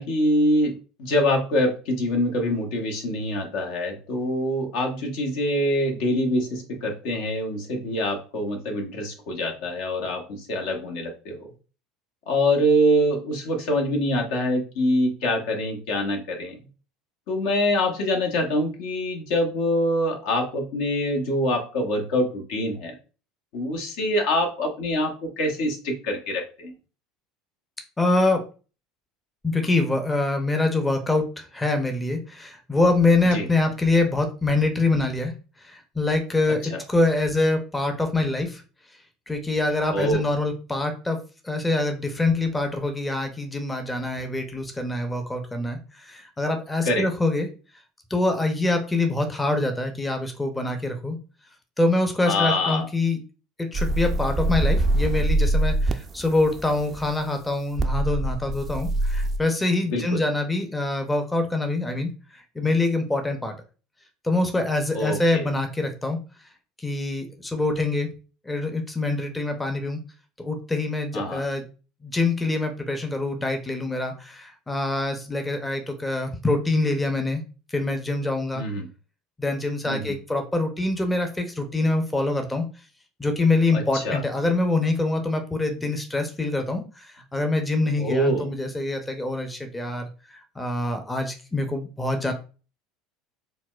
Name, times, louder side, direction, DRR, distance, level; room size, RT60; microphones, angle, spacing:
voice 1, 0.0-11.5 12.3-16.6 17.3-22.9 23.5-26.7 33.3-33.5 36.6-36.8 39.9-40.2 46.9-47.1 52.3-52.9 59.8-60.2 64.9-65.4 71.1-71.4 78.5-78.9 79.9-80.1 83.7-84.2 88.0-88.5, left 1 dB, 70° left, 2 dB, 0.8 m, -25 dB
voice 2, 28.0-28.4 29.4-35.3 35.6-38.6 39.3-41.2 41.4-47.5 48.1-51.2 51.8-53.2 53.6-63.5 64.2-66.2 66.8-68.1 68.4-70.0 70.4-71.6 72.0-77.4 77.7-78.6 79.4-82.7 83.2-90.1 90.6-92.3, left 2 dB, 15° left, 5 dB, 0.6 m, -25 dB
sound 1, 53.7-57.1 57.8-59.4, right 1 dB, 35° right, 0.3 m, -24 dB
3.9 x 2.1 x 2.3 m, 0.35 s
hypercardioid pair, 90°, 0 cm